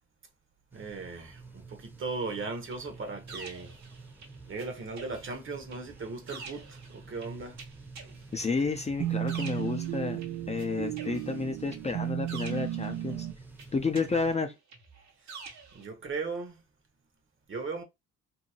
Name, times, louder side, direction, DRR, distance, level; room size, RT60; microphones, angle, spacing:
sound 1, 0.7-14.3, right 3 dB, 5° right, 0.8 m, -50 dB
voice 1, 0.7-3.8 4.5-7.6 15.2-15.4 15.7-16.6 17.5-17.8, right 4 dB, 40° right, 0.9 m, -37 dB
sound 2, 2.7-4.7 5.0-10.6 11.0-13.2 13.6-15.8, right 4 dB, 65° right, 1.1 m, -48 dB
voice 2, 8.3-10.2 10.5-13.3 13.7-14.5, left 4 dB, 20° left, 0.5 m, -31 dB
sound 3, 9.0-13.3, right 13 dB, 80° right, 0.5 m, -34 dB
2.8 x 2.7 x 2.7 m
cardioid pair, 90°, 30 cm